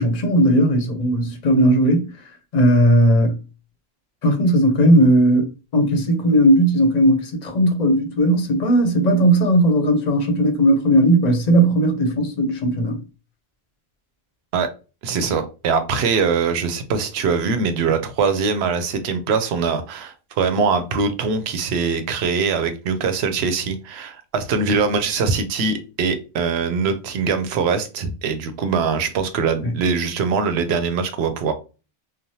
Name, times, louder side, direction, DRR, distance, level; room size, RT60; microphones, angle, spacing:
voice 1, 0.0-2.1 2.5-3.4 4.2-13.0 29.6-29.7, right 1 dB, 50° left, 0.6 m, -17 dB
voice 2, 15.0-31.5, right 5 dB, 90° right, 0.8 m, -22 dB
3.1 x 2.1 x 2.7 m
omnidirectional pair, 1.0 m